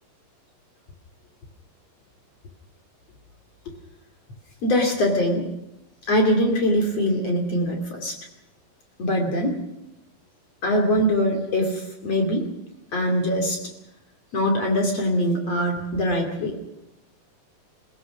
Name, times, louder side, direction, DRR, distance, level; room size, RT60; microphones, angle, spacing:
voice 1, 4.6-5.4 6.1-8.2 9.0-9.6 10.6-12.5 12.9-13.6 14.3-16.6, equal, 45° left, 3 dB, 3.5 m, -22 dB
28.0 x 16.5 x 6.1 m, 0.88 s
omnidirectional pair, 4.1 m